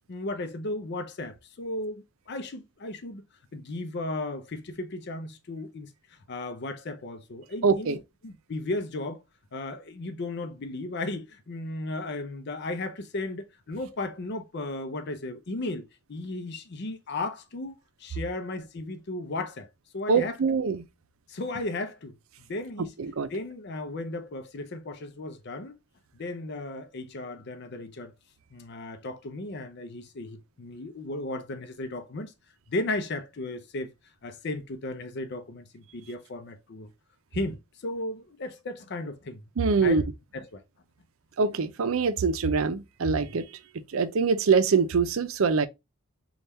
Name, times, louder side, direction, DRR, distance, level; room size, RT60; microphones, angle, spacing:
voice 1, 0.1-3.2 3.5-5.9 6.3-8.0 8.2-9.2 9.5-20.4 21.3-22.2 22.5-22.9 23.3-25.7 26.2-28.1 28.5-32.3 32.7-33.9 34.2-36.9 37.3-39.4 39.8-40.0 40.3-40.6 43.1-43.2, left 2 dB, 55° left, 0.5 m, -35 dB
voice 2, 7.6-8.0 20.1-20.8 23.0-23.3 39.6-40.0 41.4-43.4 43.9-45.7, right 5 dB, 80° right, 0.5 m, -24 dB
3.5 x 2.3 x 4.2 m
head